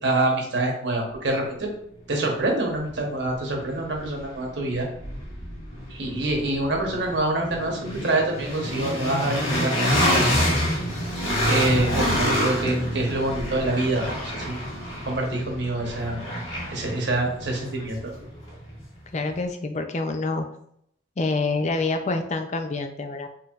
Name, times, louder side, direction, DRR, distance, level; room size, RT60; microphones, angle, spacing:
voice 1, 0.0-1.7 2.1-4.9 5.9-10.6 11.4-14.6 15.0-16.2 16.7-18.1, right 2 dB, 60° right, 0 dB, 1.0 m, -26 dB
sound 1, 2.4-2.5 2.9-18.9, equal, 90° left, 1.5 m, -28 dB
voice 2, 19.1-20.5 21.2-23.3, left 3 dB, 35° left, 6 dB, 0.4 m, -27 dB
4.5 x 3.2 x 2.4 m, 0.70 s
head